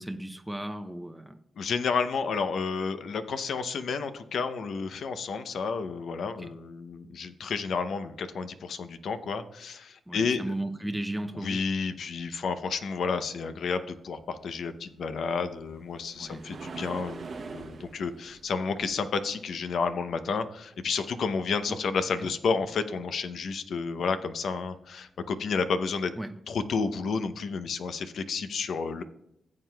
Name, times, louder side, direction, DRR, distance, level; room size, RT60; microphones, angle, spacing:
voice 1, 0.0-1.4 6.4-6.5 10.1-11.7 16.2-16.6 21.7-21.8 22.2-22.3 26.2-26.4, right 1 dB, 5° right, 0.5 m, -35 dB
voice 2, 1.6-10.4 11.3-26.1 26.5-29.0, left 5 dB, 75° left, 0.6 m, -31 dB
sound 1, 15.1-20.4 24.2-24.4 25.0-25.1, right 4 dB, 60° right, 0.8 m, -44 dB
15.5 x 7.6 x 2.3 m
cardioid pair, 75°, 0 cm